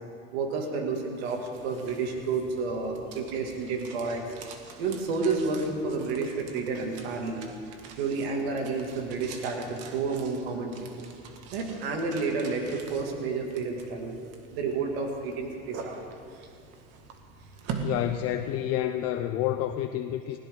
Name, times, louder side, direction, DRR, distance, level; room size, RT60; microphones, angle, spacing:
voice 1, 0.3-4.2 4.8-7.4 8.0-10.8 11.5-14.2 14.5-16.0 16.4-16.5, right 4 dB, 85° right, 2 dB, 2.4 m, -30 dB
sound 1, 0.9-19.0, right 5 dB, 55° right, 1.9 m, -44 dB
voice 2, 17.8-20.4, left 12 dB, 50° left, 7 dB, 0.7 m, -29 dB
19.5 x 17.0 x 3.8 m, 2.5 s
supercardioid pair, 120°, 30 cm